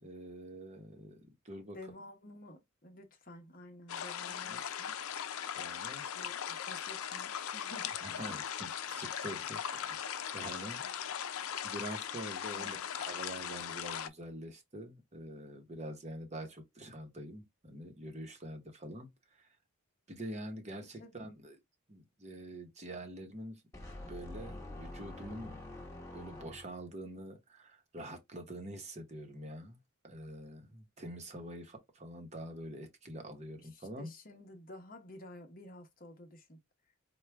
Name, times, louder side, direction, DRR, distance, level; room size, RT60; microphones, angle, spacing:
voice 1, 0.0-1.8 4.5-4.6 5.5-6.0 8.0-10.9 11.6-19.5 20.1-21.6 21.9-23.6 23.9-25.6 26.1-29.8 30.0-34.1, right 1 dB, 30° right, 0.9 m, -46 dB
voice 2, 1.7-5.0 6.1-8.1 12.5-12.8 20.7-21.3 33.6-36.6, left 1 dB, 40° left, 0.9 m, -52 dB
sound 1, 3.9-14.1, left 9 dB, 80° left, 0.5 m, -39 dB
sound 2, 23.7-26.9, left 1 dB, 15° left, 1.2 m, -46 dB
4.8 x 2.2 x 3.3 m
head